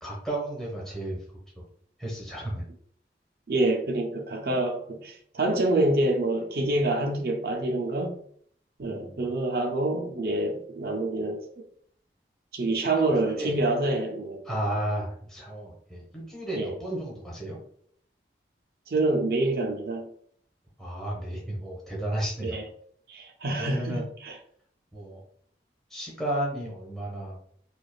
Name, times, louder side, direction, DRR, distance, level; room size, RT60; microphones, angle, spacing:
voice 1, 0.0-1.2 2.0-2.6 8.8-9.3 13.0-13.5 14.4-17.6 20.8-22.6 23.6-24.0 24.9-25.2 25.9-27.4, right 1 dB, 5° left, 1.1 m, -33 dB
voice 2, 3.5-8.1 8.8-11.6 12.5-14.4 16.5-16.7 18.9-20.1 22.4-22.6 23.1-24.3, right 2 dB, 55° right, 0.5 m, -27 dB
4.8 x 2.4 x 2.3 m
head